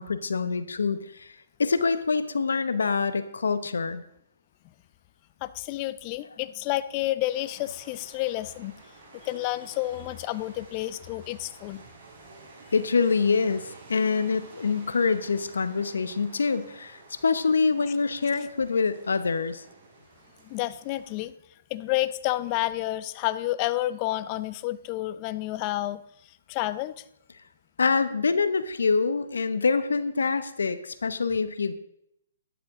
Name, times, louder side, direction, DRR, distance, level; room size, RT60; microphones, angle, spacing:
voice 1, 0.0-1.3 1.6-4.0 12.7-19.6 27.8-31.7, left 4 dB, 80° left, 13 dB, 0.8 m, -25 dB
voice 2, 5.4-8.8 9.2-11.8 20.4-21.3 21.7-26.0 26.5-27.0, left 16 dB, 30° left, 16 dB, 0.5 m, -30 dB
sound 1, 7.3-21.2, right 3 dB, 35° right, 4.7 m, -51 dB
12.0 x 10.5 x 3.7 m, 0.77 s
hypercardioid pair, 140°, 0 cm